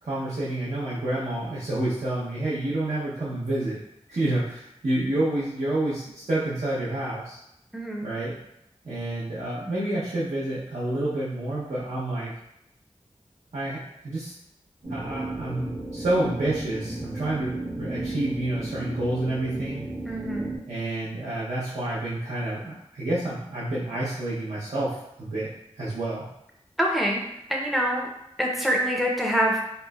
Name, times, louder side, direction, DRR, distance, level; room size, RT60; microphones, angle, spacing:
voice 1, 0.0-3.8 4.1-7.4 8.0-8.4 8.8-12.3 13.5-14.3 14.9-19.9 20.7-25.5 25.8-26.3, right 1 dB, 70° right, -10 dB, 0.7 m, -29 dB
voice 2, 7.7-8.1 20.1-20.5 26.8-27.2 27.5-28.1 28.4-29.6, equal, ahead, -1 dB, 0.5 m, -25 dB
sound 1, 14.8-20.6, right 2 dB, 40° right, 0.9 m, -34 dB
3.0 x 2.0 x 2.3 m, 0.80 s
wide cardioid pair, 70°, 12 cm